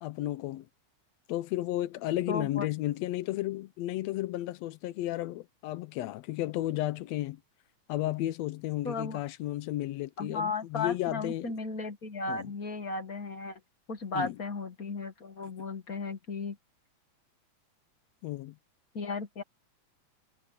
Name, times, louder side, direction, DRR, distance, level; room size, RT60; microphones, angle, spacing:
voice 1, 0.0-0.7 1.3-7.4 7.9-11.5 12.3-12.5 14.1-14.4 18.2-18.5, left 15 dB, 75° left, 1.8 m, -33 dB
voice 2, 2.3-2.7 8.8-9.2 10.2-13.6 13.9-16.6 18.9-19.4, left 3 dB, 40° left, 1.6 m, -35 dB
omnidirectional pair, 3.3 m